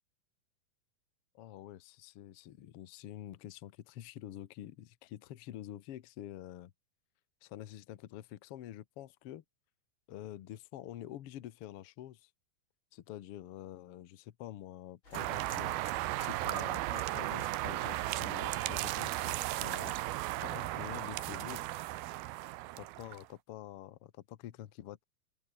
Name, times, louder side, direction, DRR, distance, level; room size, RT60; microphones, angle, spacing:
voice 1, 1.3-6.7 7.4-9.4 10.1-12.3 12.9-15.8 16.2-20.0 20.4-21.7 22.8-25.0, left 12 dB, 70° left, 1.4 m, -47 dB
sound 1, 15.0-19.1 19.4-19.9, left 3 dB, 30° left, 7.3 m, -55 dB
sound 2, 15.1-23.3, right 17 dB, 90° right, 2.8 m, -36 dB
omnidirectional pair, 4.2 m